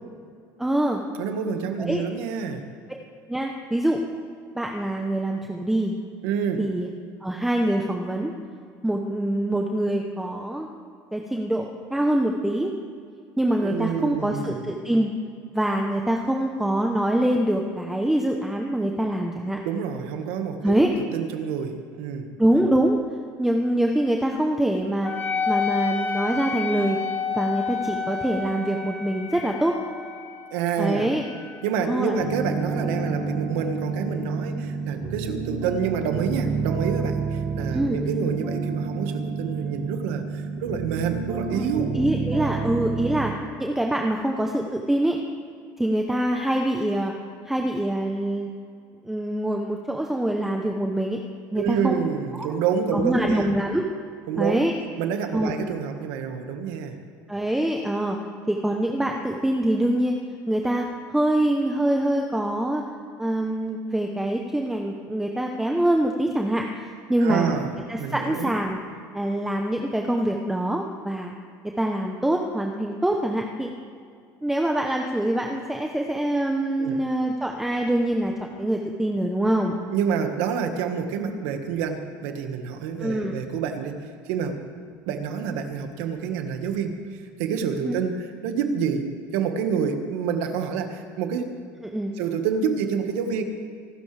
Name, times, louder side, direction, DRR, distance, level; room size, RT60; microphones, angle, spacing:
voice 1, 0.6-1.0 1.9-2.0 3.3-4.0 4.5-5.9 6.6-6.9 7.2-8.3 8.8-10.7 11.1-12.7 13.4-15.1 15.5-19.6 20.6-20.9 22.4-23.0 23.4-25.1 25.5-27.0 27.3-29.8 30.8-31.2 31.8-32.2 37.7-38.0 41.5-41.7 41.9-43.3 43.6-45.2 45.8-47.1 47.5-48.5 49.0-51.2 51.5-51.9 52.3-52.5 52.9-53.9 54.4-54.7 55.3-55.5 57.3-58.2 58.5-60.1 60.5-60.9 61.1-62.8 63.2-66.6 67.1-67.5 67.9-68.8 69.1-71.3 71.8-73.7 74.4-79.8 83.0-83.3 87.8-87.9 91.8-92.1, right 1 dB, 5° right, 1 dB, 0.8 m, -24 dB
voice 2, 1.2-2.7 6.2-6.6 13.6-14.6 19.6-22.3 30.5-31.1 31.6-41.9 51.6-53.5 54.3-54.6 55.0-57.0 67.2-67.7 68.0-68.5 76.8-77.0 79.9-84.6 85.1-91.5 92.2-93.4, right 7 dB, 90° right, 6 dB, 1.6 m, -28 dB
Wind instrument woodwind instrument, 25.0-34.0, left 5 dB, 35° left, 4.2 m, -31 dB
sound 1, 32.2-43.4, right 5 dB, 45° right, 1.8 m, -29 dB
25.0 x 13.0 x 3.4 m, 2.3 s
cardioid pair, 140°, 7 cm